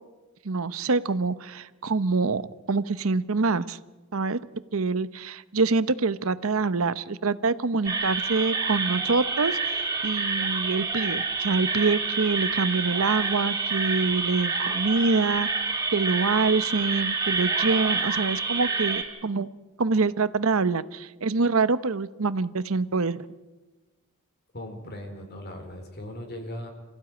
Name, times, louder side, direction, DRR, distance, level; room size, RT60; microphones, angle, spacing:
voice 1, 0.4-3.8 4.1-15.5 15.9-19.5 19.8-23.3, right 4 dB, 75° right, 15 dB, 0.9 m, -25 dB
sound 1, 7.9-19.0, right 4 dB, 20° right, 5.0 m, -28 dB
voice 2, 24.5-26.7, left 1 dB, 50° left, 4 dB, 4.3 m, -38 dB
26.5 x 15.5 x 9.1 m, 1.2 s
head